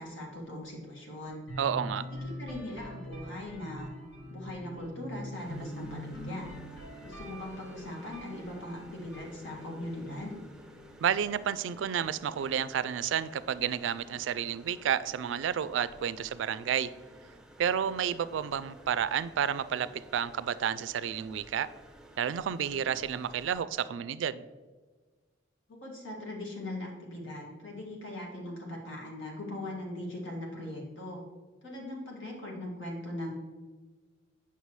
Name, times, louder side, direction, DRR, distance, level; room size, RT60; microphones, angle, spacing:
voice 1, 0.0-1.4 2.2-3.9 4.3-6.5 7.0-10.3 25.7-31.2 31.6-33.3, left 1 dB, 80° left, -2 dB, 2.0 m, -40 dB
sound 1, 1.5-11.3, equal, 65° left, 1.7 m, -44 dB
voice 2, 1.6-2.0 11.0-16.9 17.6-21.7 22.2-24.4, right 8 dB, 70° right, 16 dB, 0.3 m, -31 dB
sound 2, 5.4-23.6, right 1 dB, 5° right, 0.5 m, -54 dB
8.2 x 5.7 x 3.1 m, 1.4 s
head